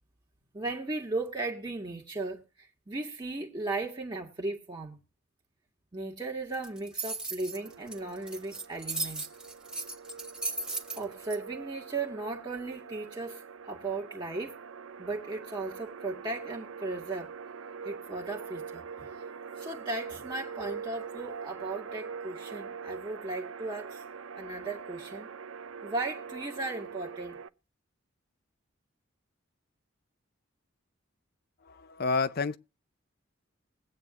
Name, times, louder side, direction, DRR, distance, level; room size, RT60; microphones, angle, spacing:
voice 1, 0.5-5.0 5.9-9.2 10.9-14.6 15.0-17.3 17.8-19.1 19.6-24.0 24.4-25.3 25.8-27.4, right 2 dB, 20° right, 1.8 m, -36 dB
sound 1, 6.5-11.4, right 3 dB, 5° right, 1.7 m, -36 dB
sound 2, 7.5-27.5, right 6 dB, 80° right, 0.6 m, -43 dB
voice 2, 31.6-32.6, left 4 dB, 50° left, 0.5 m, -29 dB
21.0 x 8.9 x 2.5 m
head